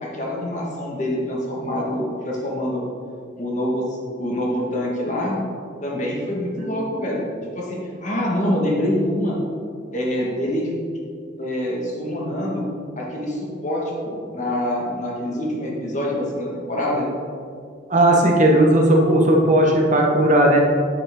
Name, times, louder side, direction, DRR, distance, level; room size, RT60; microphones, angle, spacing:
voice 1, 0.0-2.8 3.4-3.8 4.2-5.4 5.8-9.4 9.9-10.7 11.4-12.6 13.0-17.1, left 1 dB, 45° left, -3 dB, 1.9 m, -25 dB
voice 2, 17.9-20.6, right 1 dB, 45° right, 0 dB, 1.4 m, -16 dB
9.0 x 7.6 x 3.8 m, 2.3 s
head